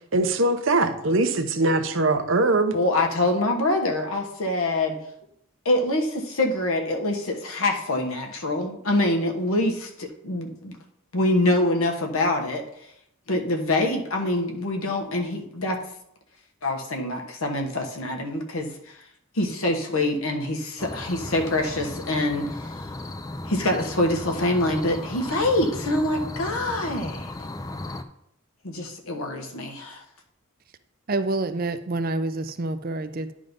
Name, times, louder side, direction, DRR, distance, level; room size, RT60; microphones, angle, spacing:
voice 1, 0.1-2.7, right 2 dB, 65° right, 8 dB, 0.9 m, -22 dB
voice 2, 2.7-5.0 5.6-10.7 11.1-12.7 13.3-15.8 16.6-19.0 19.3-22.9 23.5-27.3 28.6-30.0, left 1 dB, 85° left, 2 dB, 1.2 m, -25 dB
sound 1, 20.8-28.0, left 2 dB, 15° left, 0.4 m, -36 dB
voice 3, 31.1-33.3, right 2 dB, 45° right, 11 dB, 0.5 m, -27 dB
10.5 x 3.8 x 5.2 m, 0.74 s
head